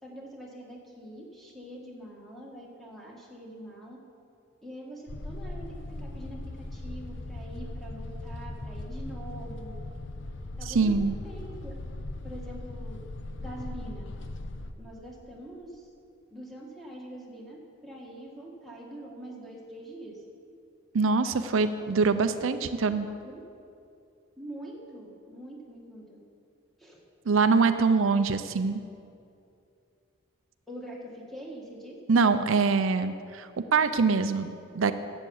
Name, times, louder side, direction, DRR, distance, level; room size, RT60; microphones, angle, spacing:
voice 1, 0.0-4.0 4.6-9.8 10.6-11.7 12.2-13.0 13.4-14.1 14.8-15.9 16.3-20.2 21.6-21.9 22.2-22.8 23.2-23.4 24.4-26.2 26.8-27.0 30.7-32.0, right 1 dB, ahead, -3 dB, 1.9 m, -44 dB
sound 1, 5.1-14.7, left 2 dB, 65° left, 0.7 m, -39 dB
voice 2, 10.7-11.1 20.9-23.1 27.3-28.8 32.1-34.9, right 4 dB, 80° right, 10 dB, 0.5 m, -24 dB
12.0 x 8.0 x 7.1 m, 2.5 s
head